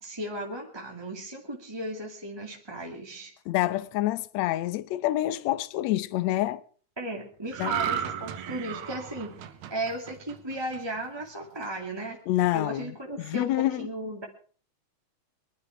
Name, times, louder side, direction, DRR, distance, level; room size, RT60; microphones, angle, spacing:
voice 1, 0.0-3.3 7.0-9.3 9.7-12.2 12.5-14.3, right 1 dB, 10° right, 2.2 m, -36 dB
voice 2, 3.5-6.6 7.6-7.7 12.3-12.9 13.2-13.9, left 15 dB, 75° left, 2.0 m, -27 dB
sound 1, 7.5-11.0 11.4-11.7, right 9 dB, 75° right, 2.3 m, -34 dB
22.5 x 12.5 x 4.7 m
omnidirectional pair, 3.4 m